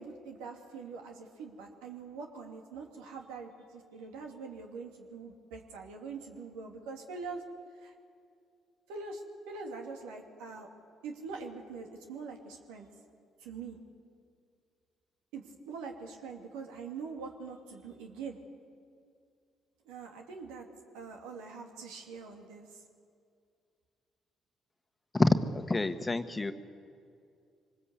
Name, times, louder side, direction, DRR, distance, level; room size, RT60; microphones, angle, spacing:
voice 1, 0.0-7.4 7.8-7.9 8.9-10.7 11.0-12.9 13.4-13.8 15.3-18.4 19.8-20.7 20.9-22.8, right 4 dB, 85° right, 2 dB, 2.5 m, -43 dB
voice 2, 25.1-26.5, left 2 dB, 20° left, 9 dB, 1.4 m, -27 dB
24.5 x 20.0 x 8.2 m, 2.4 s
hypercardioid pair, 55°, 0 cm